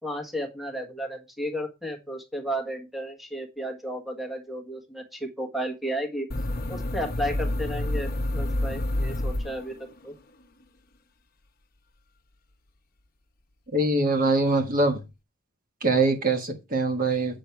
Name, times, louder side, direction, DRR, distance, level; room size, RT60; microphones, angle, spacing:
voice 1, 0.0-6.3 6.7-10.1, equal, ahead, 3 dB, 1.4 m, -33 dB
sound 1, 6.3-10.1, left 1 dB, 45° left, 0.9 m, -29 dB
voice 2, 13.7-15.0 15.8-17.4, right 2 dB, 40° right, 4 dB, 1.4 m, -23 dB
8.7 x 6.1 x 4.6 m, 0.26 s
head